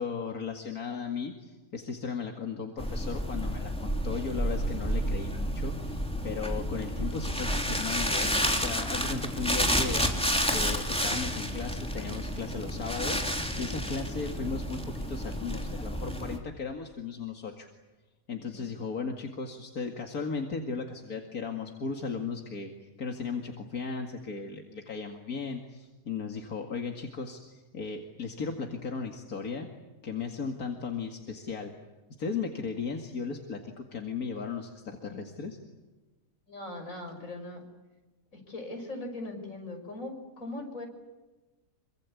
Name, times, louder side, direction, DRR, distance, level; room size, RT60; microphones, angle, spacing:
voice 1, 0.0-10.1 10.5-17.7 18.3-29.7 30.0-31.7 32.2-35.6, left 5 dB, 90° left, 3 dB, 2.6 m, -36 dB
sound 1, 2.8-16.4, equal, 5° left, 3.1 m, -30 dB
voice 2, 36.5-37.6 38.3-40.9, left 2 dB, 65° left, 4 dB, 6.5 m, -40 dB
26.5 x 24.5 x 8.4 m, 1.2 s
omnidirectional pair, 1.5 m